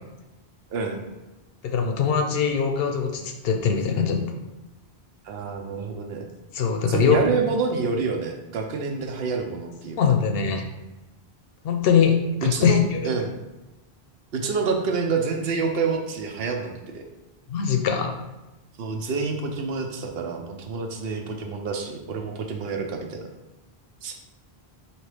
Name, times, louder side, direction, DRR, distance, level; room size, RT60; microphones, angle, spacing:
voice 1, 1.6-4.2 6.5-7.2 10.0-10.6 11.6-13.0 17.5-18.1, left 6 dB, 70° left, 4 dB, 0.7 m, -22 dB
voice 2, 5.2-6.3 6.9-10.0 12.4-13.4 14.3-17.0 18.8-23.2 24.0-24.1, right 4 dB, 70° right, 3 dB, 0.8 m, -27 dB
4.3 x 2.9 x 3.2 m, 1.1 s
omnidirectional pair, 1.1 m